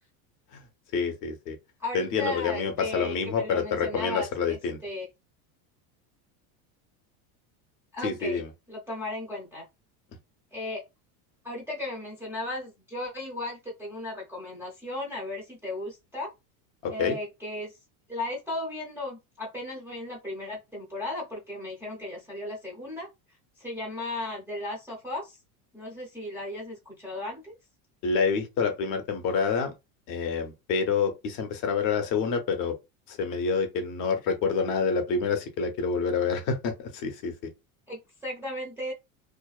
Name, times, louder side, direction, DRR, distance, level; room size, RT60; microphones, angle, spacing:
voice 1, 0.9-1.6 1.9-4.8 8.0-8.5 16.8-17.2 28.0-29.7 30.1-32.8 33.1-37.3, left 5 dB, 45° left, 0.6 m, -27 dB
voice 2, 1.8-5.1 7.9-8.4 8.7-9.6 10.5-10.8 11.4-16.3 16.9-17.7 18.1-23.1 23.6-25.4 25.7-27.6 37.9-38.9, left 1 dB, 5° right, 0.5 m, -36 dB
2.5 x 2.1 x 2.3 m
supercardioid pair, 150°, 44 cm